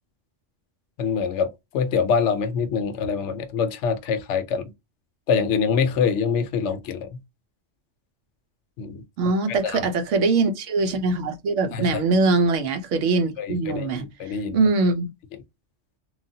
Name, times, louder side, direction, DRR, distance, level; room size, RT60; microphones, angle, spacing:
voice 1, 1.0-4.7 5.3-7.2 8.8-9.0 9.5-9.9 11.7-12.0 13.4-14.6, left 6 dB, 70° left, 0.9 m, -25 dB
voice 2, 9.2-14.0 14.5-15.1, right 3 dB, 75° right, 1.0 m, -22 dB
3.1 x 2.2 x 2.6 m
omnidirectional pair, 1.3 m